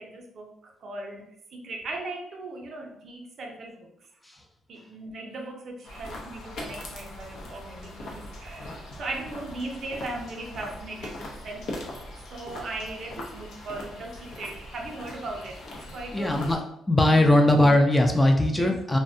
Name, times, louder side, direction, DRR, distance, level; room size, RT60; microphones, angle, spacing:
voice 1, 0.0-3.9 4.7-15.6 15.9-16.4 18.5-19.0, right 2 dB, 60° right, 1 dB, 0.5 m, -38 dB
sound 1, 5.8-16.6, left 1 dB, 75° left, 0.6 m, -41 dB
voice 2, 16.1-16.6 16.9-19.0, left 1 dB, 15° left, 3 dB, 0.3 m, -20 dB
2.5 x 2.1 x 2.6 m, 0.76 s
cardioid pair, 90°, 0 cm